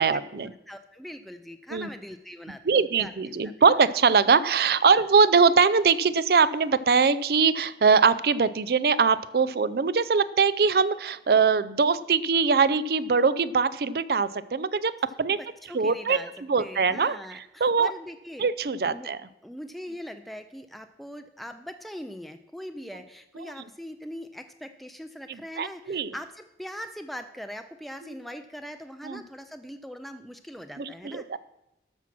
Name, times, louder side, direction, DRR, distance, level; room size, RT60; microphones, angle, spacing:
voice 1, 0.0-0.5 1.7-1.9 2.7-15.4 15.7-16.2 16.5-17.2 17.6-17.9 18.4-19.2 25.6-26.1 29.0-29.2 30.8-31.4, right 5 dB, 60° right, 17 dB, 0.4 m, -22 dB
voice 2, 0.7-3.1 3.4-3.7 4.9-5.0 15.6-16.3 16.6-18.5 18.8-19.1 19.4-31.4, equal, ahead, 7 dB, 0.4 m, -41 dB
13.0 x 6.0 x 5.9 m, 0.88 s
head